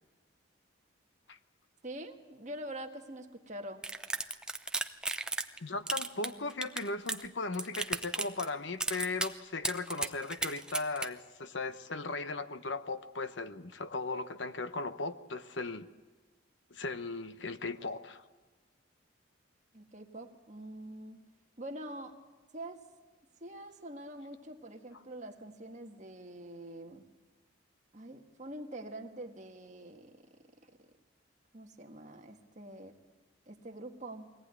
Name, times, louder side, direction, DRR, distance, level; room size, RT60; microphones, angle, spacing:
voice 1, 1.8-3.9 6.2-6.5 19.7-21.2 21.6-22.2 22.5-22.8 23.4-27.1 27.9-30.3 30.6-30.7 31.5-33.0 33.5-34.3, right 1 dB, 35° right, 4 dB, 1.7 m, -45 dB
sound 1, 3.8-5.6 5.9-7.3 7.5-8.5 8.8-9.3 9.6-11.1, right 2 dB, 5° right, 0.7 m, -34 dB
voice 2, 5.6-15.9 16.7-18.2, left 3 dB, 70° left, 11 dB, 1.0 m, -37 dB
22.5 x 18.0 x 9.6 m, 1.3 s
head